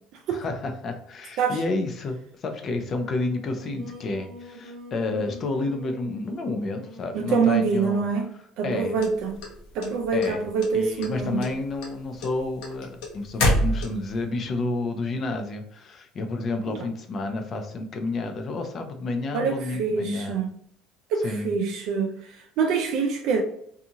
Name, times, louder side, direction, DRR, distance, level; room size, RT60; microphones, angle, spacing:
voice 1, 0.3-8.0 8.6-9.0 10.1-10.4 10.7-20.4 21.2-21.5, left 2 dB, 40° left, 0.5 m, -30 dB
Singing, 3.1-8.0, equal, 45° right, 0.9 m, -44 dB
voice 2, 7.1-8.3 8.6-9.4 9.7-11.5 16.7-16.8 19.3-20.5 21.1-22.1 22.6-23.4, right 5 dB, 65° right, 0.4 m, -25 dB
sound 1, 9.0-10.3 10.6-11.1 11.4-14.2, left 1 dB, 80° left, 0.8 m, -25 dB
2.7 x 2.4 x 2.7 m
cardioid pair, 120°, 0 cm